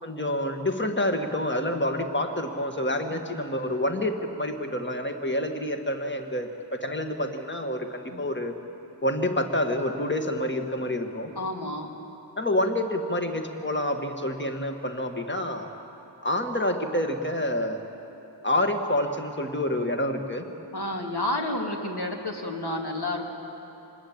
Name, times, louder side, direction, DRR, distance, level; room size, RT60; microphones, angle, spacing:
voice 1, 0.0-8.5 9.0-11.3 12.4-15.7 16.2-17.8 18.4-20.5, left 1 dB, 25° left, 5 dB, 1.8 m, -28 dB
voice 2, 11.3-11.9 20.7-23.2, left 1 dB, 55° left, 0 dB, 3.2 m, -30 dB
26.0 x 20.5 x 8.8 m, 3.0 s
wide cardioid pair, 55°, 45 cm